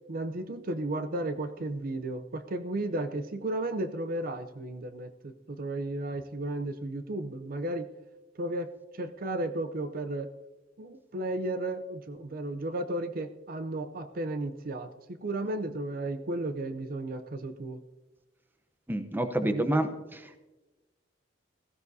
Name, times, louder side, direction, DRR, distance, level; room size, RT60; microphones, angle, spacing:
voice 1, 0.1-7.9 8.4-8.7 8.9-10.3 10.8-17.8 19.4-19.8, right 1 dB, 50° right, 10 dB, 0.6 m, -34 dB
voice 2, 18.9-20.4, right 1 dB, 10° right, 8 dB, 0.8 m, -29 dB
16.0 x 15.5 x 2.7 m, 1.1 s
head